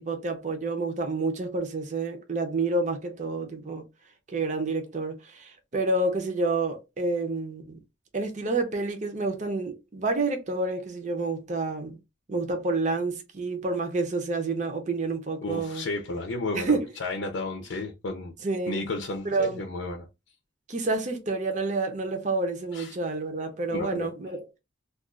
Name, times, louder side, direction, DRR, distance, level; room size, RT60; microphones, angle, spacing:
voice 1, 0.0-3.9 4.3-7.8 8.1-12.0 12.3-15.9 16.5-16.9 18.4-18.8 19.2-19.6 20.7-24.5, right 3 dB, 40° right, 0.7 m, -29 dB
voice 2, 15.4-18.3 18.7-20.1 22.7-23.0 23.7-24.1, left 2 dB, 85° left, 0.6 m, -32 dB
2.4 x 2.4 x 3.6 m
head